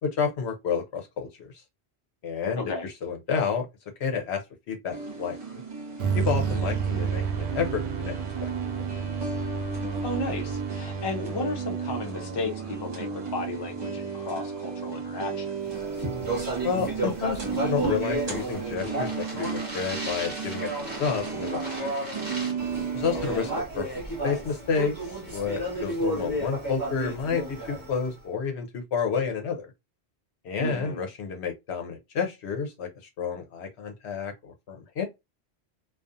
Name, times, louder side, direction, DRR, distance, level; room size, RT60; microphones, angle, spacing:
voice 1, 0.0-1.5 2.2-3.7 4.0-4.4 4.7-5.4 6.1-8.1 8.4-8.5 16.6-21.9 22.9-24.9 25.3-29.7 30.4-32.9 33.2-35.1, left 6 dB, 80° left, 1.0 m, -30 dB
voice 2, 2.6-2.9 10.0-15.8 23.1-23.5 30.6-31.0, left 2 dB, 30° left, 0.6 m, -34 dB
sound 1, 4.9-23.6, right 5 dB, 40° right, 1.0 m, -34 dB
sound 2, 6.0-14.7, right 6 dB, 90° right, 0.9 m, -32 dB
Speech, 15.7-28.1, right 1 dB, 20° right, 1.2 m, -33 dB
2.4 x 2.4 x 2.5 m
omnidirectional pair, 1.1 m